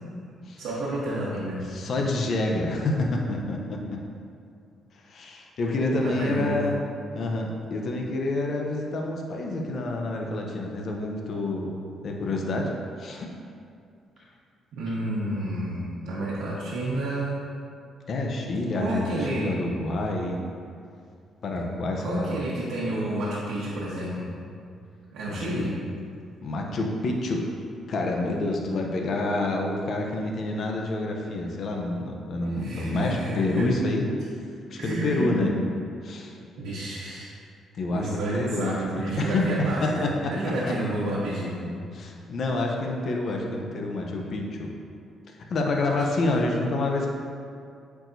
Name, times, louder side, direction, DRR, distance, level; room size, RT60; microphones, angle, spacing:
voice 1, 0.6-1.6 6.0-6.6 14.7-17.4 18.7-19.5 22.0-24.3 25.1-25.7 32.5-33.7 34.8-35.5 36.6-37.3 37.9-41.6, right 1 dB, 90° right, -8 dB, 1.1 m, -30 dB
voice 2, 1.7-4.0 5.0-6.8 7.1-11.7 12.0-12.7 13.0-13.3 18.1-20.4 21.4-22.3 25.3-25.4 26.4-27.4 27.9-34.1 34.7-35.5 36.0-36.4 37.7-39.5 39.8-40.3 41.9-44.7 45.3-47.1, left 2 dB, 55° left, 1 dB, 0.7 m, -28 dB
8.3 x 4.6 x 2.7 m, 2.4 s
cardioid pair, 115°, 0 cm